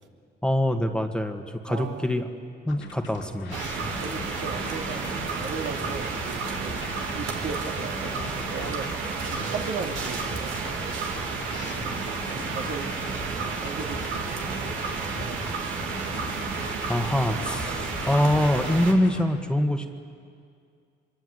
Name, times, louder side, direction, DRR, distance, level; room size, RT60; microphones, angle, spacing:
voice 1, 0.4-2.3 2.6-3.6 16.6-19.9, left 1 dB, 5° left, 5 dB, 1.6 m, -25 dB
voice 2, 1.7-2.1 4.0-6.8 7.2-8.9 9.3-10.6 10.9-11.1 11.7-14.9 15.2-15.8 17.8-17.9, right 5 dB, 65° right, 2 dB, 2.7 m, -37 dB
sound 1, 2.7-19.2, left 3 dB, 75° left, 2.8 m, -41 dB
sound 2, 3.5-18.9, right 4 dB, 90° right, 2.8 m, -31 dB
25.0 x 23.0 x 8.0 m, 2.2 s
cardioid pair, 90°, 20 cm